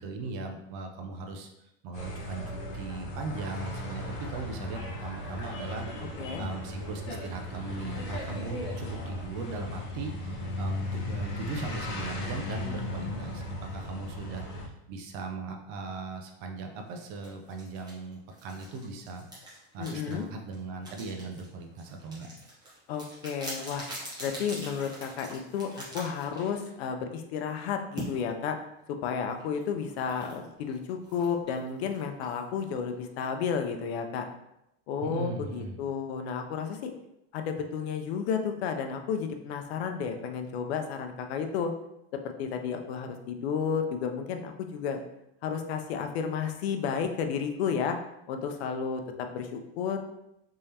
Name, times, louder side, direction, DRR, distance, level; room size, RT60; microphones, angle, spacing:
voice 1, 0.0-1.5 1.8-5.9 6.4-14.6 14.9-19.3 19.7-22.3 35.0-35.8, right 3 dB, 45° right, 4 dB, 0.6 m, -39 dB
sound 1, 1.9-14.7, left 1 dB, 35° left, 1.0 m, -36 dB
voice 2, 6.0-6.5 19.8-20.3 22.9-23.9 24.2-28.6 28.9-34.3 34.9-36.9 37.3-41.7 42.2-45.0 45.4-48.0 48.3-50.0, left 6 dB, 80° left, 6 dB, 0.6 m, -32 dB
sound 2, 17.0-26.9 28.0-28.1 29.4-33.3, right 1 dB, 15° right, 1.1 m, -44 dB
3.6 x 3.2 x 2.8 m, 0.85 s
supercardioid pair, 155°, 32 cm